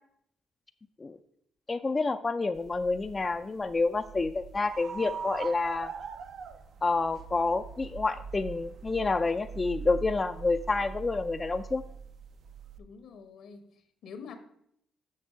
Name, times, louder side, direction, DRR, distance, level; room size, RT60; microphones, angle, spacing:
voice 1, 1.7-5.9 6.8-11.8, left 3 dB, 25° left, 8 dB, 0.3 m, -28 dB
sound 1, 2.5-12.8, right 6 dB, 65° right, 0.5 m, -42 dB
voice 2, 12.8-14.4, left 6 dB, 75° left, 8 dB, 1.1 m, -47 dB
6.4 x 6.0 x 4.5 m, 0.71 s
cardioid pair, 90°, 0 cm